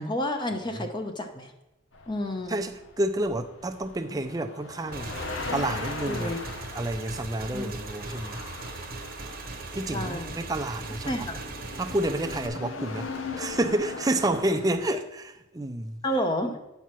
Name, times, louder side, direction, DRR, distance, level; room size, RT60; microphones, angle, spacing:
voice 1, 0.0-1.5 2.1-2.7 6.1-6.4 7.5-7.7 9.9-10.4 11.1-11.4 16.0-16.6, left 1 dB, 25° left, 0.7 m, -30 dB
sound 1, 1.9-14.9, left 4 dB, 75° left, 0.9 m, -40 dB
voice 2, 2.5-5.1 5.5-6.3 6.7-8.4 9.7-11.3 11.8-13.1 13.4-16.0, right 1 dB, 20° right, 0.5 m, -29 dB
Motorcycle / Engine, 4.9-12.5, right 3 dB, 50° right, 1.0 m, -39 dB
9.3 x 4.6 x 5.9 m
head